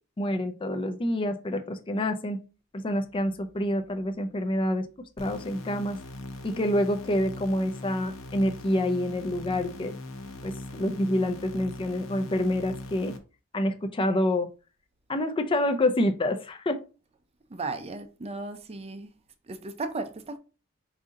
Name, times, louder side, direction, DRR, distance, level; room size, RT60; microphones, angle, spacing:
voice 1, 0.2-2.4 2.7-4.9 5.2-6.0 6.4-9.9 10.4-13.1 13.5-14.5 15.1-16.8, left 1 dB, 25° left, 0.4 m, -27 dB
sound 1, 5.2-13.2, left 2 dB, 80° left, 0.8 m, -40 dB
voice 2, 17.5-19.1 19.5-20.4, right 3 dB, 30° right, 0.5 m, -35 dB
5.0 x 2.7 x 3.7 m
head